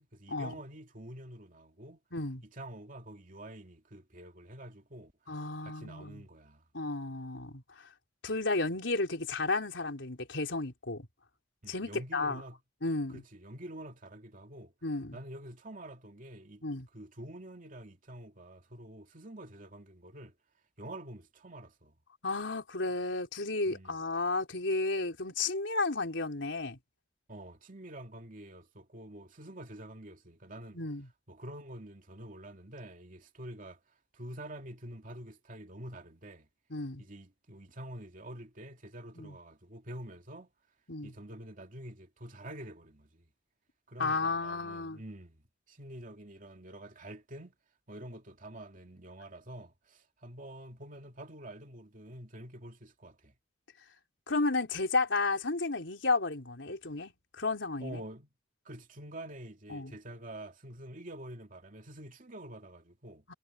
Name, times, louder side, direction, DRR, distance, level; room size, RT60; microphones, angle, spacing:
voice 1, 0.0-2.0 2.5-5.1 5.6-6.7 11.6-12.6 13.1-14.7 15.1-16.6 16.9-20.3 20.8-22.0 23.7-24.0 27.3-30.8 31.3-33.8 34.1-36.5 37.0-40.5 41.0-43.3 43.9-47.5 47.9-53.3 57.8-58.3 58.6-63.3, right 1 dB, 45° right, 2.5 m, -47 dB
voice 2, 2.1-2.4 5.3-6.2 6.7-7.9 8.2-11.1 11.7-12.4 12.8-13.2 14.8-15.2 16.6-16.9 22.2-26.8 30.7-31.1 36.7-37.0 39.2-39.4 40.9-41.1 44.0-45.0 54.3-58.0 59.7-60.0 63.3-63.4, left 3 dB, 80° left, 3.7 m, -33 dB
head